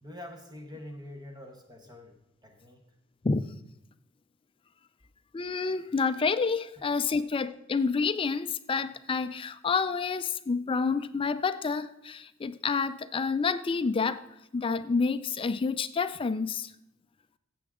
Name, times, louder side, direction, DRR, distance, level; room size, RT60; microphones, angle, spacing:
voice 1, 0.0-2.2 2.4-2.8 6.8-6.9 7.1-7.2, left 1 dB, 20° right, 1.2 m, -45 dB
voice 2, 5.3-14.2 14.5-16.7, left 4 dB, 25° left, 0.4 m, -29 dB
15.5 x 7.7 x 3.6 m
head